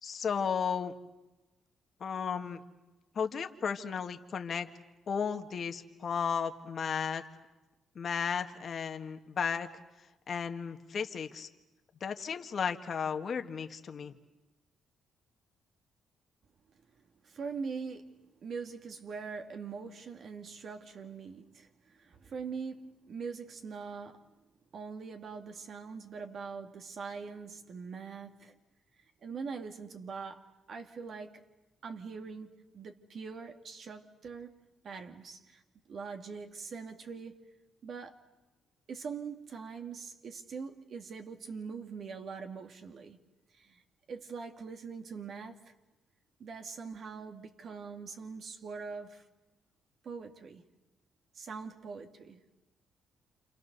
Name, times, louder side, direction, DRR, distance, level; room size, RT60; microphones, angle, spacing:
voice 1, 0.0-0.9 2.0-2.6 3.2-4.7 5.1-7.2 8.0-9.7 10.3-11.5 12.0-14.1, left 6 dB, 50° left, 1.7 m, -34 dB
voice 2, 17.2-24.3 24.7-28.6 29.2-31.4 31.8-34.5 34.8-35.6 35.9-37.4 37.8-38.2 38.9-43.2 43.5-43.8 44.1-45.7 46.4-49.3 50.0-50.6 51.3-52.4, right 5 dB, 55° right, 2.2 m, -43 dB
28.5 x 28.5 x 6.8 m
cardioid pair, 90°, 0 cm